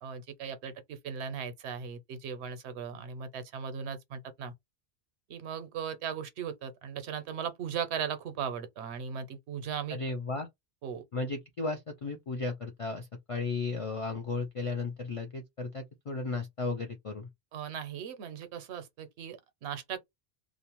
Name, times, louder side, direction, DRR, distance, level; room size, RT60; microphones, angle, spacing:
voice 1, 0.0-4.5 5.3-10.0 10.8-11.0 17.5-20.0, right 7 dB, 80° right, 0.9 m, -38 dB
voice 2, 9.9-10.5 11.1-17.3, left 3 dB, 55° left, 0.3 m, -35 dB
2.4 x 2.0 x 2.9 m
omnidirectional pair, 1.1 m